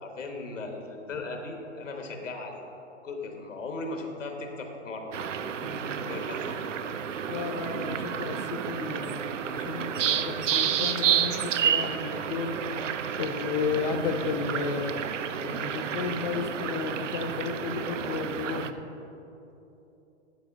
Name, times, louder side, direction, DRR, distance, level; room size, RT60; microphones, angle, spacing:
voice 1, 0.0-2.6 3.0-5.1 6.0-6.6, left 3 dB, 85° left, 3 dB, 1.2 m, -37 dB
sound 1, 5.1-18.7, right 8 dB, 80° right, 0.5 m, -30 dB
voice 2, 5.6-6.0 7.3-12.9 13.2-18.9, left 5 dB, 40° left, 6 dB, 0.5 m, -33 dB
sound 2, 9.2-18.6, right 4 dB, 30° right, 0.4 m, -51 dB
10.5 x 3.7 x 5.4 m, 3.0 s
figure-of-eight pair, 120°, 37 cm